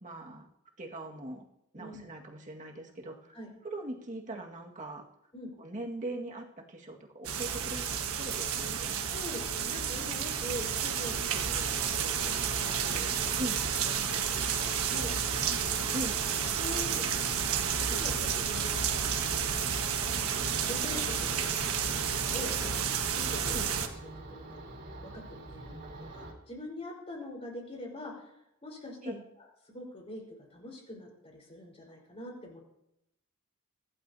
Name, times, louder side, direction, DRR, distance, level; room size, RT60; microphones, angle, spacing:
voice 1, 0.0-0.5 0.8-1.4 1.7-3.3 3.6-5.1 5.6-9.0 13.4-13.6 15.9-16.2 23.5-23.7 29.0-29.2, right 1 dB, 35° right, 1 dB, 1.9 m, -40 dB
sound 1, 7.2-23.9, right 7 dB, 85° right, 1.4 m, -31 dB
voice 2, 9.1-15.2 15.9-16.0 16.6-18.8 19.3-23.6 24.0-24.7 25.0-25.8 26.1-29.1 29.6-32.6, left 1 dB, 30° left, -1 dB, 4.5 m, -44 dB
sound 2, 14.9-26.3, right 2 dB, 55° right, 3.7 m, -45 dB
24.0 x 12.0 x 2.8 m, 0.84 s
head